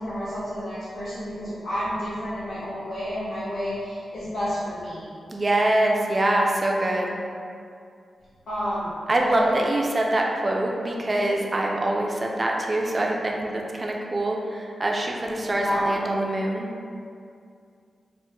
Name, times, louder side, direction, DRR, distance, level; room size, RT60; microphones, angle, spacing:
voice 1, 0.0-5.0 8.5-8.9 9.2-9.5 15.5-16.0, equal, 75° left, -13 dB, 0.8 m, -30 dB
voice 2, 5.3-7.2 9.1-16.7, right 1 dB, 25° right, -1 dB, 0.3 m, -24 dB
3.0 x 2.1 x 3.3 m, 2.3 s
wide cardioid pair, 130°, 0 cm